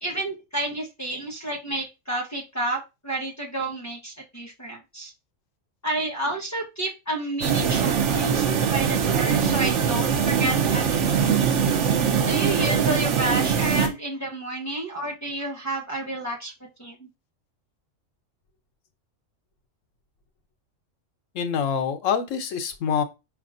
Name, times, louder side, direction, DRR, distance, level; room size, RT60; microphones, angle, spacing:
voice 1, 0.0-5.1 5.8-8.4 8.7-11.3 12.3-16.5 16.8-17.1, right 1 dB, 15° left, 1.1 m, -30 dB
sound 1, 7.4-13.9, right 7 dB, 70° right, 1.0 m, -22 dB
voice 2, 21.3-23.0, left 7 dB, 80° left, 1.0 m, -25 dB
4.7 x 3.4 x 2.5 m
omnidirectional pair, 1.3 m